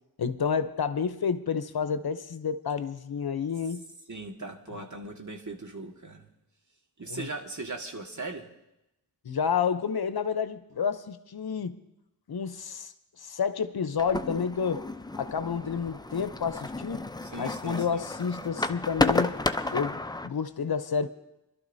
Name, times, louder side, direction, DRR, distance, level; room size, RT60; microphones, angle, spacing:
voice 1, 0.2-3.8 4.7-4.9 7.1-7.3 9.2-11.8 12.3-14.8 15.2-17.1 17.4-19.4 19.7-21.1, left 6 dB, 75° left, 11 dB, 0.8 m, -30 dB
voice 2, 4.1-6.3 7.0-8.4 17.2-18.0, right 2 dB, 50° right, 2 dB, 1.8 m, -39 dB
sound 1, 14.0-20.3, left 2 dB, 10° left, 0.5 m, -32 dB
24.0 x 12.5 x 2.7 m, 0.90 s
cardioid pair, 40°, 38 cm